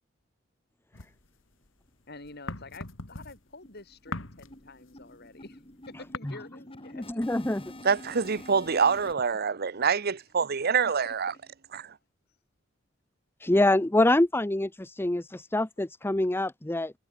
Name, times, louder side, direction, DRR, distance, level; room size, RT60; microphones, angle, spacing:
sound 1, 0.9-1.9 2.2-6.2, left 3 dB, 75° left, 2.5 m, -40 dB
sound 2, 1.9-2.0 2.3-2.4 2.7-2.9 3.2-9.1, left 1 dB, 30° left, 6.1 m, -48 dB
voice 1, 2.1-5.6 5.9-7.2 11.0-11.1, left 3 dB, 55° left, 6.1 m, -47 dB
voice 2, 6.9-7.6 13.4-16.9, left 1 dB, 10° left, 0.6 m, -25 dB
voice 3, 7.8-11.3 11.7-11.9, right 6 dB, 50° right, 0.8 m, -26 dB
head